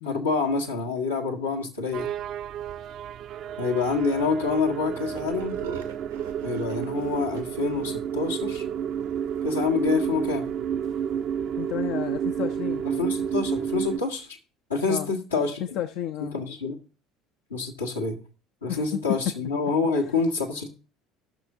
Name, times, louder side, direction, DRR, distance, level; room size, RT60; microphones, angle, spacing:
voice 1, 0.0-2.1 3.6-5.6 6.4-8.6 9.4-10.4 12.9-14.4 14.7-15.8 16.3-16.8 17.5-18.2 18.6-20.7, left 4 dB, 90° left, 1.3 m, -27 dB
sound 1, 1.9-14.0, right 8 dB, 50° right, 0.5 m, -30 dB
sound 2, 5.1-7.4 7.7-7.8 8.2-8.4 8.8-9.1 9.6-9.7 10.3-10.5, right 6 dB, 85° right, 1.2 m, -42 dB
voice 2, 11.6-12.9 14.9-15.1 15.7-16.4 18.7-18.8, left 11 dB, 60° left, 0.5 m, -32 dB
17.5 x 6.1 x 2.6 m
hypercardioid pair, 65°, 0 cm